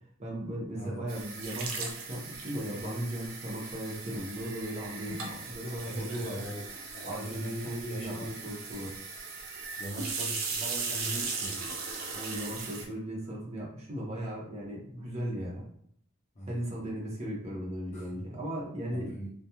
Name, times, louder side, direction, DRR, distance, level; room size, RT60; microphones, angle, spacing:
voice 1, 0.2-6.4 7.0-9.0 12.1-15.7 16.5-19.2, right 1 dB, 30° right, -4 dB, 0.8 m, -37 dB
sound 1, 1.1-12.9, right 4 dB, 75° right, 0.5 m, -38 dB
voice 2, 5.8-6.7 6.9-8.3 9.8-11.7 16.4-16.7 17.9-18.2 18.9-19.3, equal, 35° left, -3 dB, 0.6 m, -40 dB
2.3 x 2.2 x 2.9 m, 0.66 s
head